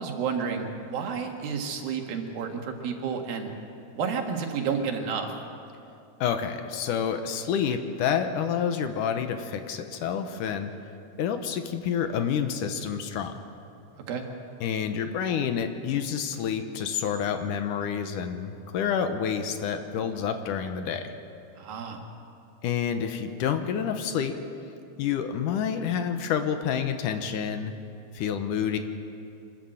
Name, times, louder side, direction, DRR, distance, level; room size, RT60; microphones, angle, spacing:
voice 1, 0.0-3.5 4.0-5.3 14.0-14.2 21.6-22.0, right 6 dB, 85° right, 3 dB, 3.6 m, -31 dB
voice 2, 6.2-10.7 11.2-13.3 14.6-21.1 22.6-24.4 25.0-27.7 28.1-28.8, left 7 dB, 70° left, 7 dB, 2.4 m, -28 dB
25.5 x 13.0 x 7.9 m, 2.6 s
omnidirectional pair, 4.0 m